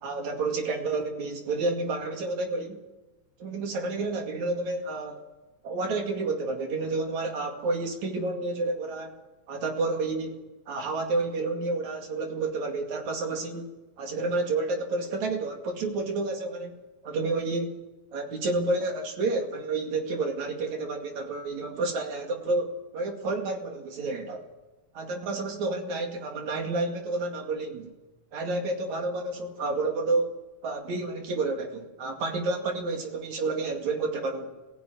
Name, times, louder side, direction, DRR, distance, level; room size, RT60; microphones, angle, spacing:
voice 1, 0.0-2.8 3.4-5.2 5.6-9.1 9.5-10.4 10.7-13.7 14.0-16.8 17.0-17.8 18.1-24.5 25.0-27.9 28.3-34.5, right 3 dB, 70° right, 3 dB, 3.6 m, -30 dB
21.5 x 15.5 x 9.3 m, 1.1 s
omnidirectional pair, 3.5 m